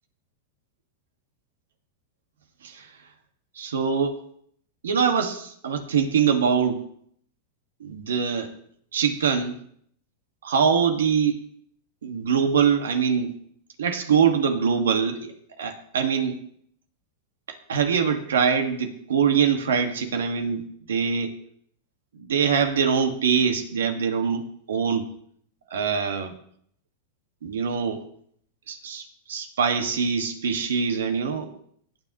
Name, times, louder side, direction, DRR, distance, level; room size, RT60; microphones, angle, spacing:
voice 1, 3.5-4.2 4.8-6.8 7.8-8.5 8.9-9.6 10.4-11.4 12.0-13.3 13.8-16.4 17.5-21.3 22.1-25.1 25.7-26.3 27.4-28.1 28.7-31.5, right 6 dB, 90° right, 6 dB, 1.6 m, -23 dB
18.0 x 9.9 x 3.0 m, 0.66 s
hypercardioid pair, 115°, 0 cm